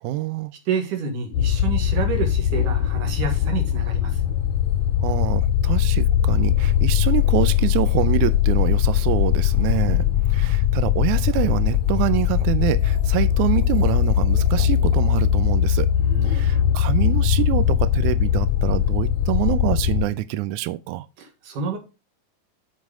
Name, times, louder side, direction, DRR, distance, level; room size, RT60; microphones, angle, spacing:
voice 1, 0.0-0.5 5.0-15.9 16.2-21.1, right 15 dB, 90° right, 1.7 m, -25 dB
voice 2, 0.7-4.2 9.9-10.1 16.0-16.5 21.2-21.8, right 4 dB, 70° right, 3.0 m, -29 dB
sound 1, 1.3-20.1, left 10 dB, 80° left, 1.5 m, -20 dB
7.5 x 5.5 x 4.9 m
omnidirectional pair, 4.1 m